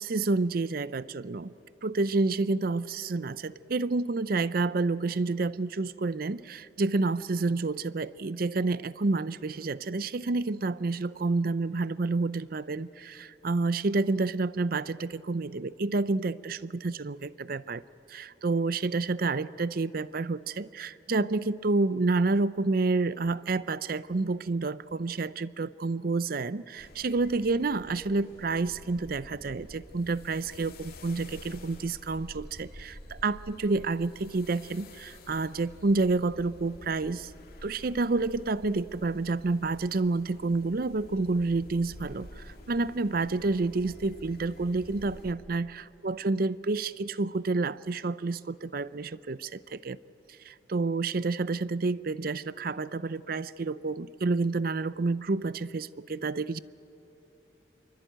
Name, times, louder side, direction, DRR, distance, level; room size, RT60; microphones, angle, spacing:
voice 1, 0.0-1.5 1.8-17.8 18.1-37.3 37.6-50.0 50.4-56.6, right 3 dB, 50° right, 17 dB, 0.5 m, -29 dB
sound 1, 26.8-45.3, left 1 dB, 55° left, 2.5 m, -49 dB
26.5 x 24.0 x 9.2 m, 2.9 s
head